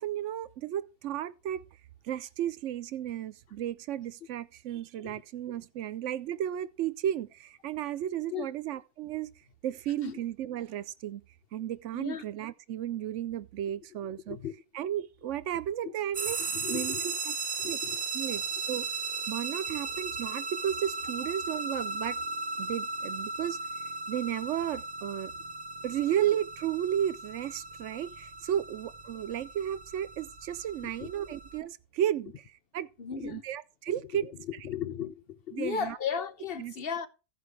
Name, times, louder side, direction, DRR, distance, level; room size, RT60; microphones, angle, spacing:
voice 1, 0.0-1.6 2.0-9.3 9.6-11.2 11.5-14.4 14.7-17.4 17.7-17.8 18.1-18.9 19.3-22.2 22.6-23.6 24.1-25.3 25.8-32.9 33.2-34.3 35.5-36.0 36.6-36.7, right 10 dB, 90° right, 1.0 m, -33 dB
sound 1, 16.1-31.6, right 4 dB, 55° right, 1.2 m, -36 dB
voice 2, 16.5-17.0 17.6-18.0 30.8-31.1 33.0-33.4 34.6-37.1, left 7 dB, 55° left, 1.0 m, -35 dB
14.5 x 5.0 x 4.7 m
omnidirectional pair, 1.2 m